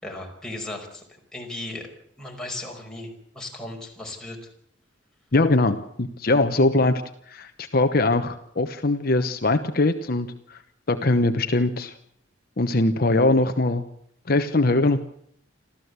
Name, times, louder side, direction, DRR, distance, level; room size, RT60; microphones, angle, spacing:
voice 1, 0.0-1.0 1.3-1.9 2.2-4.4 6.5-6.6, left 2 dB, 5° left, -1 dB, 5.3 m, -36 dB
voice 2, 5.3-7.0 7.3-10.6 10.9-12.0 12.6-13.8 14.3-15.1, left 2 dB, 50° left, 8 dB, 1.0 m, -21 dB
26.5 x 14.5 x 8.2 m, 0.70 s
head